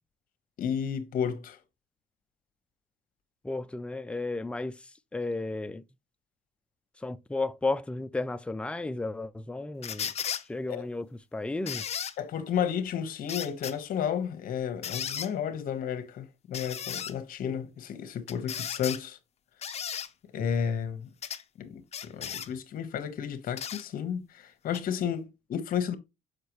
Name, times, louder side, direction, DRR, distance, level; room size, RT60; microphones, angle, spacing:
voice 1, 0.6-1.6 10.7-10.9 12.2-19.2 20.3-21.1 21.6-26.0, left 8 dB, 55° left, 1.1 m, -32 dB
voice 2, 3.4-4.7 5.1-5.8 7.0-10.1 10.5-11.1 11.3-11.8, left 2 dB, 5° left, 0.4 m, -33 dB
sound 1, 9.8-10.4 11.7-12.1 13.3-13.7 14.8-15.3 16.5-17.1 18.3-19.0 19.6-20.1 21.2-21.4 21.9-22.5 23.6-23.8 24.7-24.8, left 8 dB, 40° left, 0.7 m, -35 dB
6.6 x 5.2 x 3.0 m
cardioid pair, 110°, 17 cm